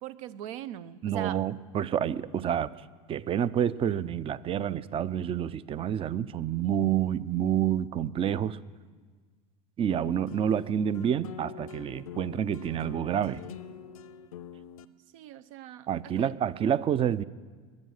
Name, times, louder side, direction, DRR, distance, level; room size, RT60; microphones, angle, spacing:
voice 1, 0.0-1.4 15.1-15.9 16.2-16.3, right 11 dB, 70° right, 16 dB, 0.8 m, -41 dB
voice 2, 1.0-2.7 3.1-8.6 9.8-13.4 15.9-17.2, right 9 dB, 30° right, 18 dB, 0.6 m, -28 dB
sound 1, 9.9-14.8, left 8 dB, 85° left, 0.7 m, -45 dB
21.5 x 9.6 x 6.5 m, 1.5 s
hypercardioid pair, 90°, 18 cm